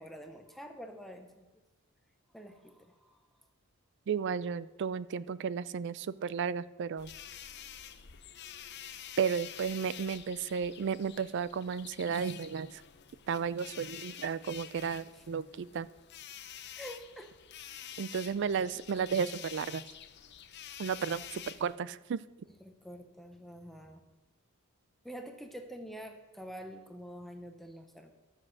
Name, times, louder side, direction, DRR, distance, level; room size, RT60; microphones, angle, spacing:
voice 1, 0.0-1.5 2.3-3.2 15.1-15.2 16.8-17.3 22.6-24.0 25.0-28.1, equal, ahead, 5 dB, 0.7 m, -47 dB
voice 2, 4.1-7.1 9.2-12.8 13.3-15.9 18.0-19.8 20.8-22.2, right 6 dB, 55° right, 17 dB, 0.3 m, -33 dB
sound 1, 7.0-21.8, left 10 dB, 50° left, 0.6 m, -48 dB
12.5 x 6.3 x 6.3 m, 1.1 s
head